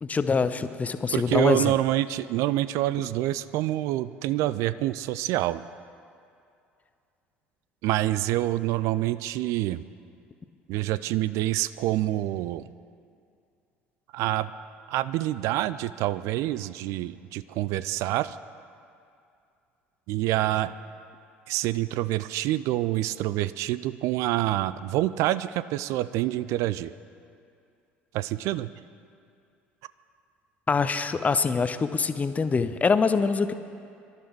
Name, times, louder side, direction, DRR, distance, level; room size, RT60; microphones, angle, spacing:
voice 1, 0.0-1.7 30.7-33.5, left 5 dB, 25° left, 11 dB, 0.8 m, -24 dB
voice 2, 1.1-5.6 7.8-9.8 10.7-12.7 14.1-14.5 14.9-18.4 20.1-20.7 21.5-26.9 28.1-28.7, right 15 dB, 55° right, 15 dB, 0.4 m, -27 dB
24.5 x 12.5 x 4.6 m, 2.4 s
figure-of-eight pair, 60°, 6 cm